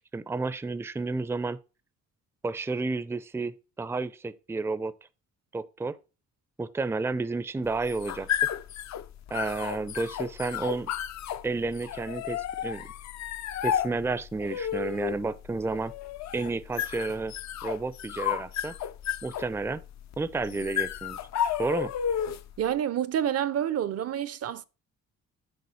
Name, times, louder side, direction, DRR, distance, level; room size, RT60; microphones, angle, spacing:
voice 1, 0.1-1.6 2.4-4.9 5.5-6.0 6.6-8.3 9.3-10.9 11.4-12.9 13.6-15.9 16.3-17.3 17.6-18.7 19.2-19.8 20.2-21.2 21.6-21.9, right 3 dB, 10° right, 0.5 m, -31 dB
sound 1, 7.7-22.6, left 10 dB, 65° left, 0.6 m, -33 dB
voice 2, 22.6-24.6, right 10 dB, 55° right, 0.6 m, -28 dB
7.0 x 3.9 x 6.4 m
cardioid pair, 90°, 30 cm